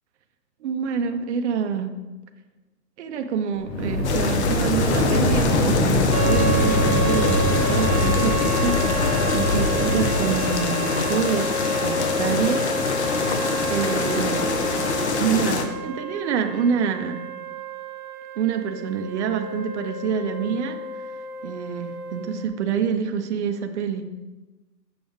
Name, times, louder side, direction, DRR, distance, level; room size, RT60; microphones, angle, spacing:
voice 1, 0.6-1.9 3.0-13.4 13.7-14.5 15.1-17.2 18.4-20.8 21.4-24.1, right 7 dB, 45° right, 7 dB, 0.6 m, -27 dB
sound 1, 3.6-10.6, left 1 dB, 75° left, 1.9 m, -23 dB
sound 2, 4.0-15.6, left 5 dB, 45° left, 0.8 m, -25 dB
sound 3, 6.1-22.5, right 2 dB, 65° right, 1.0 m, -30 dB
7.1 x 6.0 x 3.7 m, 1.1 s
hypercardioid pair, 145°, 50 cm